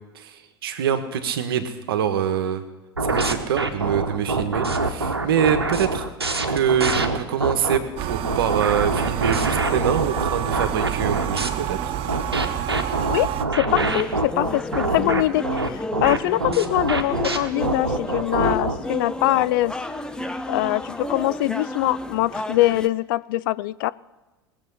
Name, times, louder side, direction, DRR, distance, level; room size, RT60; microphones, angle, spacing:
voice 1, 0.1-2.6 3.0-6.0 6.5-11.9, right 8 dB, 70° right, 9 dB, 1.3 m, -25 dB
sound 1, 3.0-7.8 8.2-11.5 12.1-18.8, right 3 dB, 90° right, 1.0 m, -25 dB
sound 2, 8.0-13.4, right 10 dB, 45° right, 0.8 m, -28 dB
voice 2, 13.6-19.7 20.5-23.9, left 17 dB, 60° left, 19 dB, 0.4 m, -23 dB
sound 3, 13.7-22.9, left 1 dB, 5° left, 0.8 m, -31 dB
20.0 x 7.2 x 5.6 m, 1.2 s
figure-of-eight pair, 80°, 13 cm